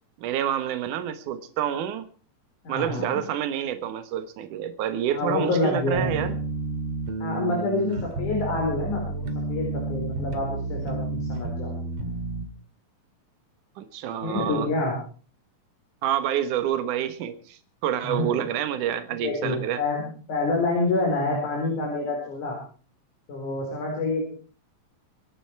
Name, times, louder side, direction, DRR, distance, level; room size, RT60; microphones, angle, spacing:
voice 1, 0.2-2.1 2.7-6.4 13.8-14.7 16.0-19.8, right 10 dB, 65° right, 10 dB, 2.7 m, -28 dB
voice 2, 2.6-3.2 5.1-6.3 7.2-11.8 14.2-15.0 18.0-18.4 19.2-22.6 23.3-24.2, left 2 dB, 55° left, -1 dB, 5.9 m, -27 dB
sound 1, 5.9-12.5, right 2 dB, 45° right, 2.6 m, -31 dB
25.0 x 11.0 x 4.7 m, 0.41 s
omnidirectional pair, 4.2 m